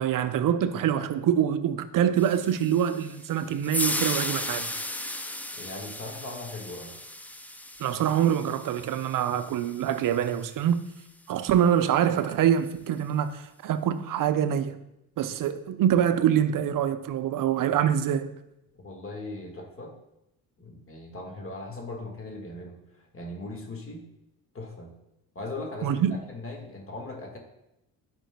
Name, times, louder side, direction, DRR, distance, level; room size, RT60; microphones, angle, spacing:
voice 1, 0.0-4.7 7.8-10.9 11.3-14.8 15.2-18.3 25.8-26.2, right 9 dB, 50° right, 0.6 m, -25 dB
sound 1, 2.2-10.5, left 1 dB, 5° left, 0.5 m, -36 dB
voice 2, 5.5-6.9 18.8-19.9 20.6-24.0 24.5-24.9 25.4-27.4, left 2 dB, 30° left, 1.7 m, -39 dB
8.8 x 5.2 x 2.3 m
hypercardioid pair, 60°, 43 cm